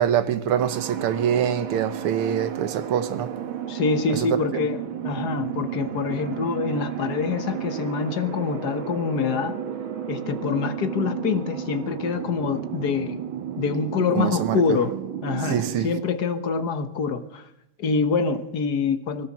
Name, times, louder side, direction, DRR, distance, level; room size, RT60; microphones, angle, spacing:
voice 1, 0.0-3.3 14.2-14.6 15.5-15.9, right 9 dB, 85° right, 1.9 m, -24 dB
sound 1, 0.6-16.0, right 10 dB, 65° right, 2.0 m, -33 dB
voice 2, 3.7-9.6 10.1-13.2 13.6-15.0 15.2-17.5 17.8-19.3, left 5 dB, 50° left, 1.7 m, -25 dB
22.0 x 16.5 x 7.5 m
omnidirectional pair, 2.4 m